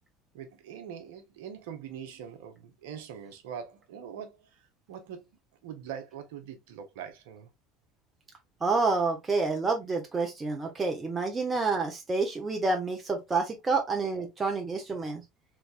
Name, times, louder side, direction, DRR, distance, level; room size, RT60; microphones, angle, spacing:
voice 1, 0.3-5.3 5.6-7.5, right 8 dB, 70° right, 0.8 m, -43 dB
voice 2, 8.6-15.2, right 3 dB, 25° right, 0.8 m, -28 dB
3.3 x 3.2 x 2.4 m
hypercardioid pair, 75°, 0 cm